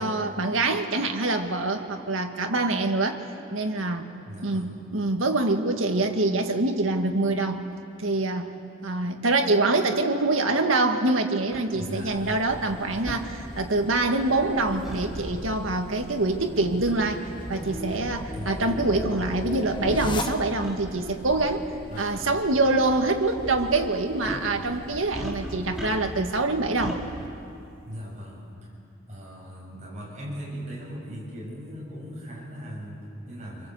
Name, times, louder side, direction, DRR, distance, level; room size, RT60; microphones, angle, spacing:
voice 1, 0.0-3.2 3.5-4.1 4.4-7.6 8.0-8.5 8.8-21.7 22.0-27.0, right 2 dB, 90° right, 5 dB, 2.0 m, -25 dB
voice 2, 4.3-4.7 11.7-12.4 12.9-13.0 16.0-16.1 18.3-18.8 21.9-22.1 27.8-28.7 29.1-33.7, equal, 35° right, -4 dB, 7.9 m, -39 dB
sound 1, 11.5-11.6 13.1-13.2 14.8-15.1 16.9-17.1 17.9-18.0 18.8-18.9 19.2-19.3 20.6-20.8 22.1-22.3 22.6-22.7 24.2-24.5 25.1-26.3 26.8-27.0, equal, ahead, 3.5 m, -36 dB
sound 2, 12.0-27.3, equal, 45° left, 2.3 m, -42 dB
sound 3, 16.3-20.9, left 2 dB, 25° left, 1.0 m, -35 dB
27.0 x 25.5 x 8.0 m, 2.6 s
head